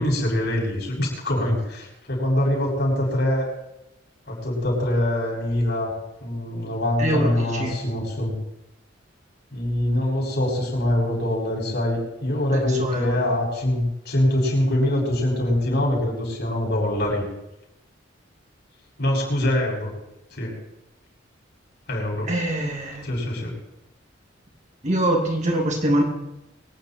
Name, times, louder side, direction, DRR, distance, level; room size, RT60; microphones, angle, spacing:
voice 1, 0.0-3.5 4.3-8.3 9.5-17.2 19.0-19.9 20.3-20.5 21.9-22.3 23.0-23.5, left 1 dB, 60° left, -1 dB, 6.1 m, -24 dB
voice 2, 7.0-7.3 7.6-7.7 12.5-13.3 22.3-23.0 24.8-26.0, right 1 dB, 40° right, 0 dB, 2.6 m, -24 dB
23.5 x 9.6 x 4.5 m, 0.89 s
head